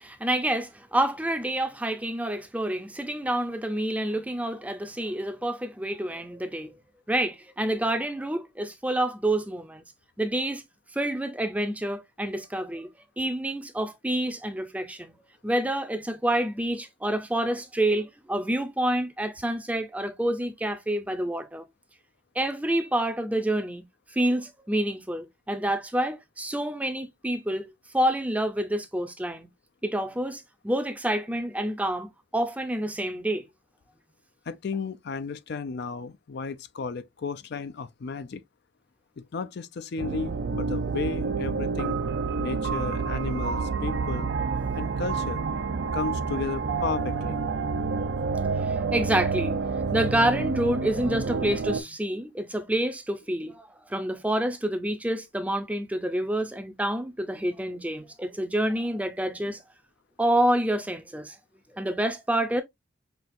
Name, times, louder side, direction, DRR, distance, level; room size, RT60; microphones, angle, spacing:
voice 1, 0.0-6.7 7.1-9.8 10.2-10.6 10.9-12.9 13.2-15.1 15.4-21.7 22.4-23.8 24.1-29.5 29.8-33.4 48.6-49.6 49.9-59.6 60.2-61.4 61.7-62.6, right 1 dB, 10° right, 0.5 m, -28 dB
voice 2, 34.5-38.4 39.2-42.0 42.4-44.3 44.7-45.4 45.9-47.4, left 5 dB, 55° left, 0.4 m, -34 dB
sound 1, 40.0-51.8, right 4 dB, 60° right, 0.5 m, -28 dB
5.7 x 2.4 x 2.5 m
head